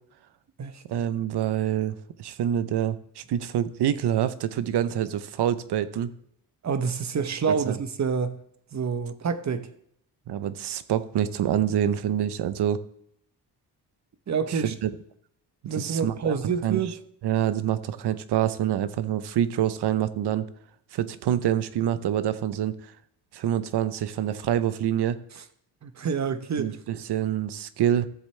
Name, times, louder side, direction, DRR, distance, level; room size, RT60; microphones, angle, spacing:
voice 1, 0.9-6.1 7.5-7.8 10.3-12.8 14.5-14.9 15.8-16.4 16.6-16.8 17.2-20.5 20.9-22.8 23.3-25.2 26.6-28.1, right 10 dB, 75° right, 0.8 m, -26 dB
voice 2, 6.6-8.4 8.7-9.7 14.3-14.7 15.7-16.9 25.3-25.4 25.8-26.8, right 6 dB, 40° right, 0.9 m, -28 dB
13.5 x 7.3 x 3.3 m
cardioid pair, 90°, 41 cm